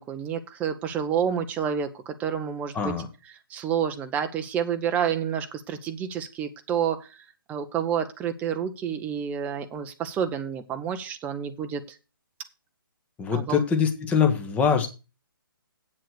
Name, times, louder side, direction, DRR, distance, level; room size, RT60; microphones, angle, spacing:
voice 1, 0.0-3.0 3.5-7.1 7.5-11.8 13.3-13.6, right 8 dB, 10° right, 7 dB, 0.8 m, -29 dB
voice 2, 2.7-3.1 13.2-14.9, left 6 dB, 10° left, 5 dB, 1.3 m, -23 dB
8.4 x 7.6 x 6.5 m, 0.31 s
figure-of-eight pair, 135°, 12 cm